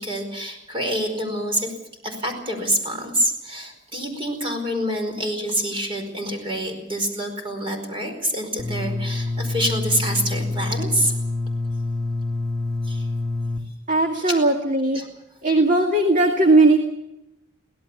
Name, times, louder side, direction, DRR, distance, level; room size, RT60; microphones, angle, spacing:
voice 1, 0.0-1.7 2.0-11.1 12.8-13.1 14.3-14.4 14.9-15.1, right 1 dB, 30° right, 4 dB, 4.9 m, -26 dB
sound 1, 8.6-13.6, left 2 dB, ahead, 2.6 m, -26 dB
voice 2, 13.9-15.0 15.4-16.8, right 2 dB, 45° right, 3 dB, 2.1 m, -18 dB
24.0 x 17.5 x 7.2 m, 0.89 s
head